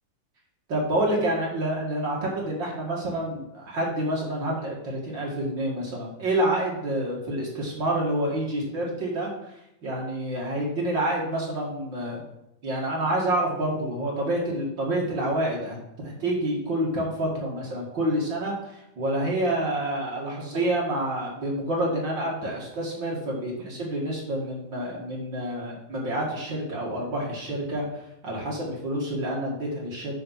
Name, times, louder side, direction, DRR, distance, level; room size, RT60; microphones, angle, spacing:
voice 1, 0.7-9.3 9.8-12.2 12.6-15.8 16.0-27.8 28.2-30.1, right 1 dB, 40° right, -3 dB, 2.3 m, -28 dB
7.8 x 6.8 x 5.8 m, 0.84 s
omnidirectional pair, 3.6 m